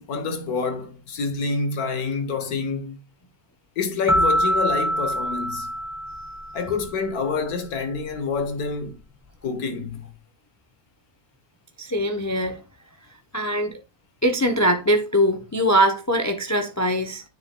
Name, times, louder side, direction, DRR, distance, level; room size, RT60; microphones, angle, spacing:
voice 1, 0.0-3.0 3.8-5.7 6.5-9.0 9.4-10.1, left 4 dB, 75° left, 1.5 m, -27 dB
sound 1, 4.1-6.8, equal, ahead, 0.9 m, -24 dB
voice 2, 11.8-12.6 13.3-13.8 14.2-17.2, equal, 25° left, 0.3 m, -22 dB
9.8 x 6.9 x 2.2 m
omnidirectional pair, 1.6 m